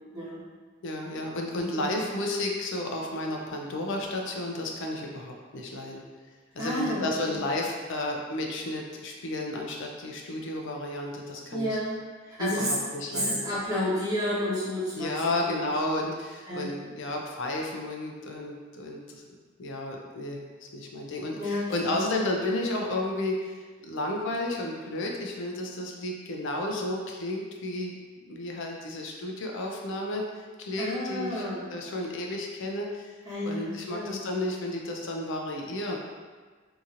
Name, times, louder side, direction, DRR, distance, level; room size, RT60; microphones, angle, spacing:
voice 1, 0.8-6.0 6.5-11.8 12.4-13.4 14.9-19.2 19.6-27.9 28.3-30.2 30.6-33.1 33.4-36.0, left 1 dB, 60° left, 1 dB, 0.4 m, -32 dB
voice 2, 1.5-2.1 6.6-7.4 11.5-12.0 12.2-12.7 13.1-15.1 15.4-15.7 16.5-16.7 21.4-22.0 30.8-31.6 33.2-34.2, left 1 dB, 20° right, -11 dB, 1.0 m, -31 dB
2.8 x 2.7 x 2.5 m, 1.5 s
head